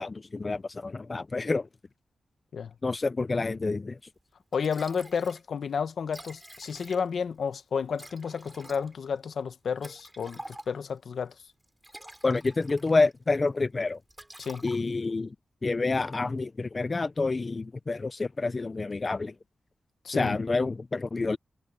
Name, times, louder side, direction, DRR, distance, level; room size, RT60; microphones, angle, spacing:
voice 1, 0.0-1.7 2.8-4.0 12.2-14.0 14.6-15.3 15.6-19.3 20.1-21.4, left 3 dB, 30° left, 0.4 m, -28 dB
Liquid, 4.2-4.3 4.5-5.4 5.7-5.8 6.0-7.3 7.9-11.0 11.6-13.2 13.5-13.7 14.1-15.1, right 1 dB, 10° right, 7.7 m, -47 dB
voice 2, 4.5-11.3 14.4-14.7 20.0-20.4, left 6 dB, 65° left, 1.2 m, -31 dB
wide cardioid pair, 105°, 0 cm